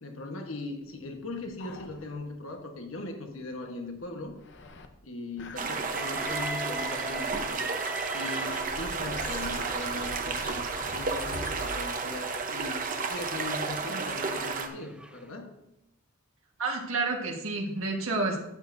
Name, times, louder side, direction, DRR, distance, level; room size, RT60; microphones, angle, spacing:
voice 1, 0.0-4.3 5.0-7.7 8.1-12.8 13.1-15.5, left 2 dB, 75° left, 3 dB, 1.2 m, -39 dB
sound 1, 0.9-2.5 2.8-2.9 3.3-3.4 4.0-4.9 5.4-6.4 6.8-7.5 8.5-11.8, left 2 dB, 55° left, 0.8 m, -44 dB
sound 2, 5.6-14.7, right 4 dB, 40° right, 0.8 m, -32 dB
Train, 5.8-9.2 10.0-15.3, right 1 dB, 5° right, 0.3 m, -42 dB
voice 2, 16.6-18.4, right 3 dB, 80° right, 1 dB, 1.4 m, -29 dB
13.0 x 8.3 x 2.6 m, 0.88 s
head